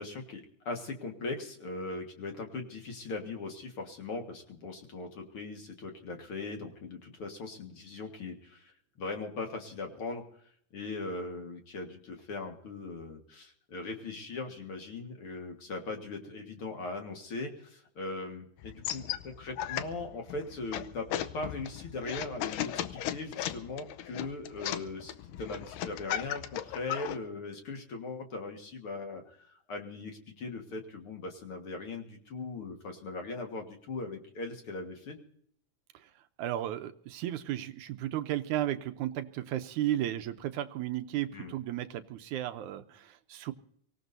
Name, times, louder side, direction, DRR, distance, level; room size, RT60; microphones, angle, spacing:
voice 1, 0.0-10.2 10.7-21.1 21.3-35.2 41.3-41.5, left 3 dB, 50° left, 4 dB, 2.2 m, -40 dB
sound 1, 18.6-27.2, left 11 dB, 85° left, 2.4 m, -37 dB
voice 2, 35.9-43.5, right 12 dB, 80° right, 8 dB, 2.1 m, -34 dB
24.5 x 17.0 x 2.7 m, 0.65 s
omnidirectional pair, 3.6 m